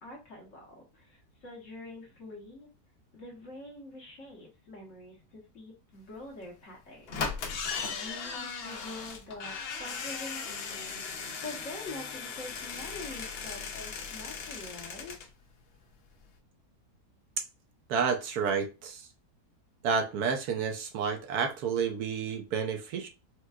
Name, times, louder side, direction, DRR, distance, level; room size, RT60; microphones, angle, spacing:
voice 1, 0.0-2.7 3.1-7.2 7.9-15.2, left 2 dB, 55° left, 1.3 m, -45 dB
sound 1, 6.4-6.5 7.1-15.3 15.6-15.7 15.9-16.0, left 5 dB, 90° left, 0.5 m, -37 dB
voice 2, 17.9-19.1 19.8-23.1, right 6 dB, 75° right, 1.1 m, -30 dB
4.4 x 2.3 x 2.3 m
omnidirectional pair, 1.7 m